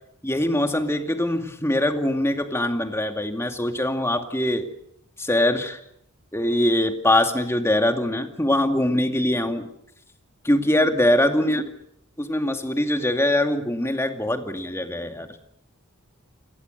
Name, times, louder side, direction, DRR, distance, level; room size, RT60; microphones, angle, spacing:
voice 1, 0.2-4.7 5.2-5.8 6.3-9.7 10.4-11.6 12.2-15.3, left 1 dB, 10° left, 5 dB, 2.2 m, -22 dB
29.0 x 22.5 x 6.6 m, 0.73 s
head